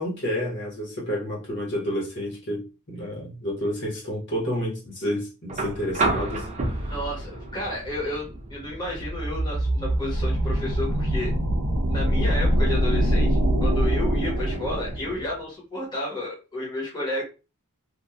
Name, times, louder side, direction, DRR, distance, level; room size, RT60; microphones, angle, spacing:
voice 1, 0.0-6.5, equal, 55° left, 1.3 m, -30 dB
sound 1, 5.5-13.5 14.9-15.0, right 2 dB, 35° right, 0.5 m, -33 dB
voice 2, 6.9-11.3 11.9-17.2, left 1 dB, 20° left, 1.1 m, -31 dB
sound 2, 8.8-15.3, equal, 90° right, 0.7 m, -24 dB
2.9 x 2.5 x 2.4 m
head